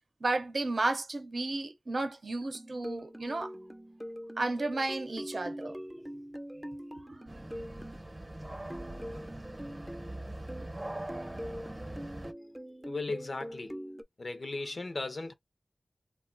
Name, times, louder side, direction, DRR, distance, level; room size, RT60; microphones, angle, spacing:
voice 1, 0.2-3.5 4.4-5.8 7.1-7.2, right 2 dB, 70° right, 0.7 m, -33 dB
sound 1, 2.4-8.0 8.7-10.8 11.1-14.0, equal, 5° right, 0.4 m, -43 dB
sound 2, 7.3-12.3, right 1 dB, 30° right, 0.8 m, -42 dB
voice 2, 12.8-13.8 14.2-15.3, left 3 dB, 70° left, 0.5 m, -36 dB
2.3 x 2.1 x 3.8 m
wide cardioid pair, 55°, 0 cm